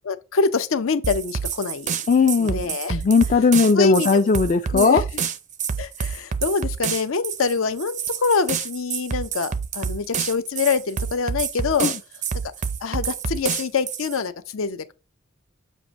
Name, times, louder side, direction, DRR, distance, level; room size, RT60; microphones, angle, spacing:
voice 1, 0.1-1.9 2.4-3.0 3.8-4.1 4.7-5.2 5.8-11.9 12.8-14.9, left 5 dB, 75° left, 0.6 m, -25 dB
sound 1, 1.0-14.2, right 6 dB, 35° right, 0.4 m, -28 dB
voice 2, 2.1-2.6 2.9-5.0 11.8-11.9, left 5 dB, 40° left, 0.3 m, -18 dB
7.4 x 2.6 x 5.1 m
head